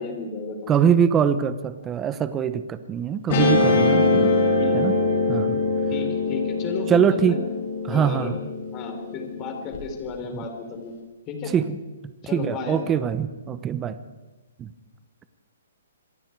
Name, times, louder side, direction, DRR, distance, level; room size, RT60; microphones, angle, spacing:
voice 1, 0.0-0.7 4.6-4.8 5.9-7.4 7.9-8.3 8.7-10.9 11.3-11.5 12.2-12.8, left 4 dB, 25° left, 4 dB, 4.1 m, -33 dB
voice 2, 0.7-4.3 4.7-4.9 5.3-5.6 6.9-7.4 7.8-8.3 11.5-11.7 12.3-14.0 14.6-14.7, right 8 dB, 15° right, 12 dB, 0.9 m, -23 dB
Guitar, 3.3-9.8, left 3 dB, 40° left, 6.6 m, -23 dB
27.0 x 22.5 x 4.7 m, 1.2 s
hypercardioid pair, 160°, 0 cm